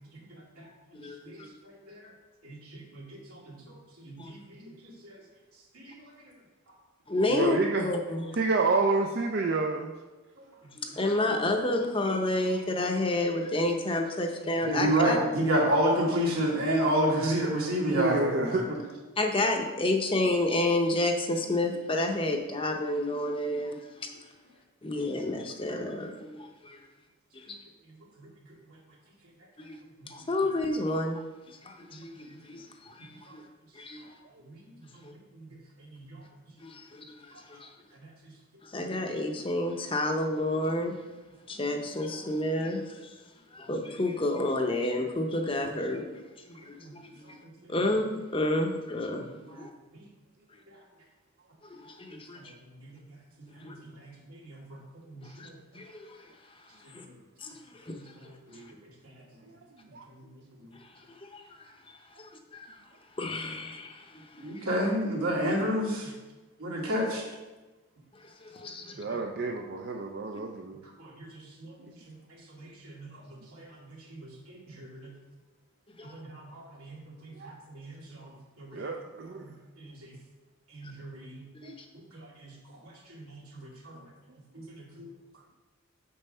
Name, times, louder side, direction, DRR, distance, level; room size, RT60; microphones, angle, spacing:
voice 1, 1.0-1.5 4.2-4.3 7.1-8.3 10.8-15.2 19.2-24.1 24.8-26.8 29.6-29.7 30.1-31.2 31.7-32.3 32.5-32.6 33.8-34.0 36.6-36.8 37.5-37.7 38.7-40.9 41.5-42.9 43.5-46.0 46.7-47.1 47.7-49.2 49.5-49.7 51.7-52.4 53.6-53.7 55.4-55.5 55.7-56.1 56.9-57.0 57.4-57.5 57.9-58.0 61.3-61.4 62.5-62.7 63.2-63.9 68.5-68.8 76.0-76.1 81.6-81.7, left 1 dB, 25° left, 3 dB, 0.7 m, -29 dB
voice 2, 2.4-3.8 4.0-4.7 5.0-5.2 5.7-5.9 14.4-18.6 25.7-25.8 28.2-28.3 35.4-35.6 35.9-36.2 43.7-43.8 46.9-47.0 49.5-49.6 52.8-52.9 53.4-54.8 55.1-55.2 57.9-58.0 58.5-58.6 64.4-66.1 66.6-67.2 71.0-71.3 71.6-71.7 72.1-72.2 72.5-73.1 73.6-73.7 74.1-75.1 76.0-78.9 79.8-80.1 80.7-81.4 82.1-82.5 82.8-82.9 83.2-84.0 84.5-85.1, right 1 dB, 85° right, -4 dB, 2.6 m, -31 dB
voice 3, 7.3-7.9 8.3-9.9 18.0-18.9 59.9-60.0 69.0-70.9 71.8-71.9 77.4-77.5 78.7-79.4 81.6-81.8, right 3 dB, 50° right, 2 dB, 0.5 m, -29 dB
7.1 x 5.5 x 5.5 m, 1.2 s
head